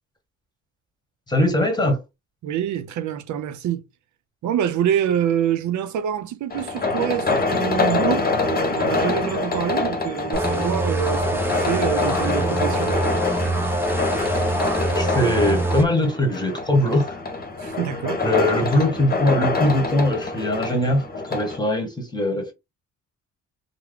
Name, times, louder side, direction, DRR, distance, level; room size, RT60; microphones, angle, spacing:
voice 1, 1.3-2.0 14.9-17.2 18.2-21.0 21.3-22.5, left 1 dB, 15° left, 1.4 m, -21 dB
voice 2, 2.4-3.8 4.4-13.1 17.6-18.2, right 10 dB, 70° right, 0.6 m, -26 dB
sound 1, 6.5-21.6, left 3 dB, 30° left, 1.0 m, -25 dB
sound 2, 10.3-15.8, right 1 dB, 5° right, 0.8 m, -24 dB
3.4 x 2.0 x 3.5 m
cardioid pair, 90°, 30 cm